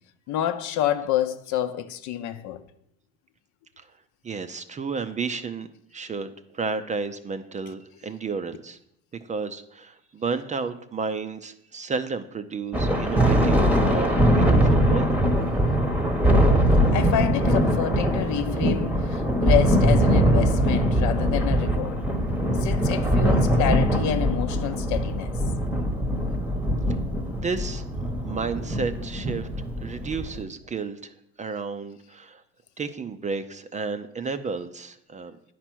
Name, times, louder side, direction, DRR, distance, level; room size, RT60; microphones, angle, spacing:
voice 1, 0.3-2.6 16.9-22.0 22.6-25.3, left 11 dB, 60° left, 0.8 m, -28 dB
voice 2, 4.2-5.7 5.9-8.8 9.3-15.1 27.3-27.8 28.2-29.5 29.8-32.4 32.8-35.4, right 4 dB, 20° right, 0.5 m, -32 dB
Thunder, 12.7-30.4, equal, 5° right, 1.0 m, -22 dB
10.0 x 4.5 x 6.1 m
supercardioid pair, 100°, 34 cm